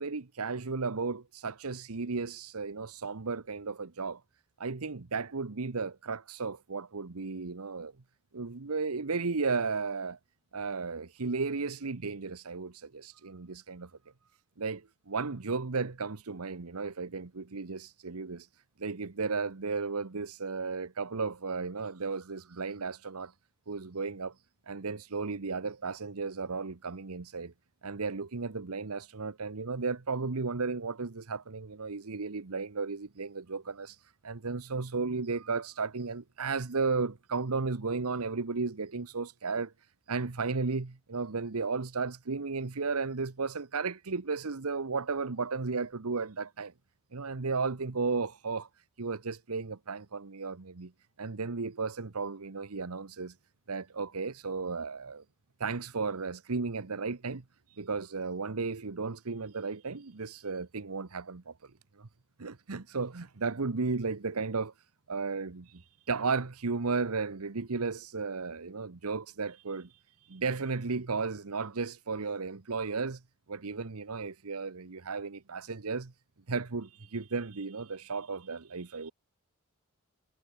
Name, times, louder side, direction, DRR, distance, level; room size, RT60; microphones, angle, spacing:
voice 1, 0.0-4.2 4.6-7.9 8.3-10.2 10.5-13.9 14.6-18.5 18.8-23.3 23.7-24.3 24.7-27.5 27.8-34.0 34.2-39.7 40.1-46.7 47.1-48.7 49.0-50.9 51.2-53.3 53.7-55.2 55.6-57.4 57.8-61.5 62.0-62.1 62.4-64.7 65.1-69.9 70.3-73.2 73.5-76.1 76.5-79.1, right 4 dB, 85° right, 1.0 m, -34 dB
head